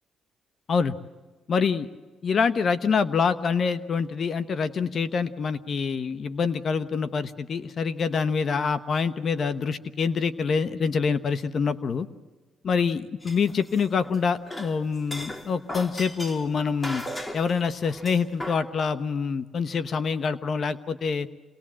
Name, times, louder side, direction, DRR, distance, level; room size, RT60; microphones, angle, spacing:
voice 1, 1.5-1.9 2.2-12.1 12.6-17.0 17.3-21.3, left 5 dB, 50° left, 12 dB, 1.0 m, -26 dB
sound 1, 13.2-14.2 14.5-18.6, left 1 dB, 20° left, 2.8 m, -37 dB
27.5 x 19.5 x 7.5 m, 1.3 s
cardioid pair, 90°, 0 cm